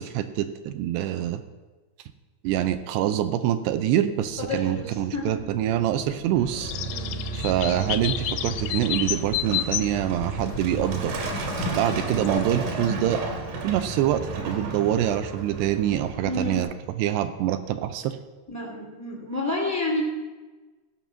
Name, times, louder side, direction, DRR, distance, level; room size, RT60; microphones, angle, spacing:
voice 1, 0.0-1.4 2.4-6.7 7.3-11.2 11.7-13.2 13.6-16.7 17.0-18.2, right 11 dB, 80° right, 10 dB, 2.6 m, -25 dB
sound 1, 4.2-14.4, right 1 dB, 30° left, 0.5 m, -41 dB
voice 2, 4.4-5.4 6.9-7.1 16.2-16.6 18.5-20.0, left 2 dB, 10° left, -2 dB, 0.9 m, -30 dB
Truck, 6.4-16.6, right 3 dB, 65° right, 3.3 m, -33 dB
sound 2, 6.5-12.4, left 14 dB, 85° left, 2.6 m, -32 dB
16.0 x 5.5 x 7.5 m, 1.3 s
omnidirectional pair, 5.0 m